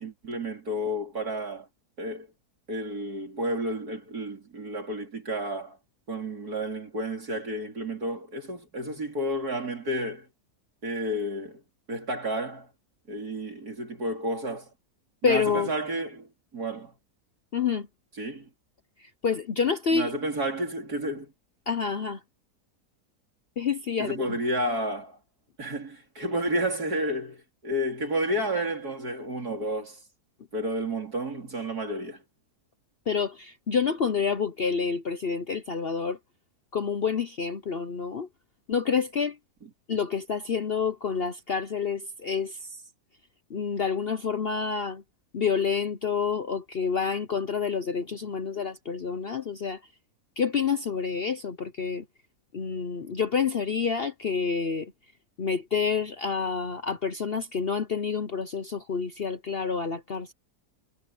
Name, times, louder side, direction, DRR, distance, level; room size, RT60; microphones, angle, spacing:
voice 1, 0.0-1.7 2.0-2.3 2.7-5.8 6.1-10.3 10.8-11.6 11.9-12.7 13.1-14.7 15.2-16.3 16.5-16.9 18.2-18.5 19.9-21.3 24.0-25.2 25.6-30.0 30.5-32.2, right 1 dB, 70° right, 4.5 m, -31 dB
voice 2, 15.2-15.7 17.5-17.9 19.0-20.1 21.7-22.2 23.6-24.4 33.1-36.2 36.7-38.3 38.7-39.4 39.9-42.8 43.5-45.0 45.3-49.8 50.4-52.0 52.5-54.9 55.4-60.3, left 6 dB, 45° left, 0.9 m, -28 dB
omnidirectional pair, 1.7 m